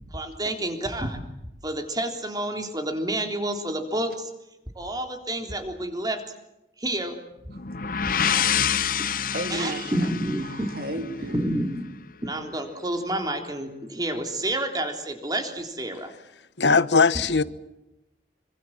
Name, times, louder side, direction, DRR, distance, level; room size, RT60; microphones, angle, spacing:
voice 1, 0.1-1.2 1.6-4.3 4.8-6.2 6.8-7.2 8.2-8.5 9.5-10.7 11.3-11.9 12.2-16.1, right 1 dB, 20° right, 3.6 m, -29 dB
sound 1, 7.5-11.3, left 8 dB, 50° left, 0.9 m, -27 dB
voice 2, 8.2-10.1 10.4-11.5, right 1 dB, 55° right, 3.0 m, -36 dB
voice 3, 16.6-17.4, left 4 dB, 80° left, 1.1 m, -19 dB
27.0 x 25.0 x 7.5 m
head